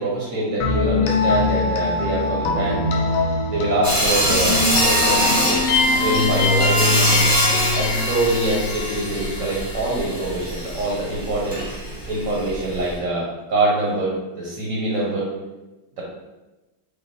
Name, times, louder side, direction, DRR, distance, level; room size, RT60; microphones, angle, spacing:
voice 1, 0.0-2.8 3.5-7.2 7.7-11.6 12.1-15.3 16.0-16.1, right 2 dB, 55° right, -4 dB, 0.9 m, -24 dB
sound 1, 0.6-10.4, left 3 dB, 75° left, 1.2 m, -22 dB
Sawing, 3.8-13.0, equal, 10° left, 0.8 m, -24 dB
5.0 x 2.1 x 3.2 m, 1.1 s
omnidirectional pair, 2.1 m